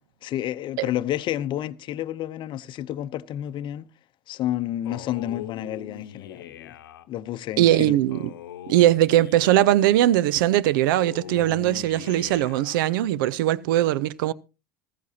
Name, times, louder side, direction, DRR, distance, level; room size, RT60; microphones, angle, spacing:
voice 1, 0.2-3.9 4.3-6.7 7.1-8.0, left 12 dB, 45° left, 0.7 m, -30 dB
Male speech man speaking, 4.8-7.1 8.1-9.9 10.8-12.8, left 10 dB, 80° left, 0.9 m, -41 dB
voice 2, 7.6-8.3 8.7-14.3, right 13 dB, 70° right, 0.6 m, -20 dB
15.0 x 15.0 x 2.8 m
hypercardioid pair, 85°, 11 cm